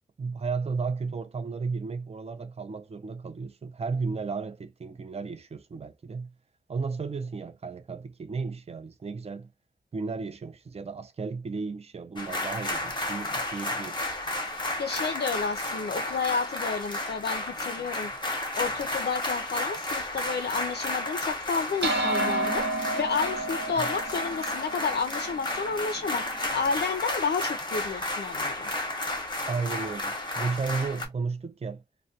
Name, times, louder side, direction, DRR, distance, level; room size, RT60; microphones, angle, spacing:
voice 1, 0.2-6.3 6.7-9.5 9.9-14.0 23.8-23.9 29.5-31.8, right 4 dB, 35° right, 0.4 m, -33 dB
sound 1, 12.2-31.1, left 1 dB, 25° left, 0.8 m, -32 dB
voice 2, 14.8-28.7, left 5 dB, 60° left, 0.4 m, -31 dB
sound 2, 21.8-26.5, right 2 dB, 70° right, 0.7 m, -31 dB
2.2 x 2.1 x 2.7 m
wide cardioid pair, 90°, 19 cm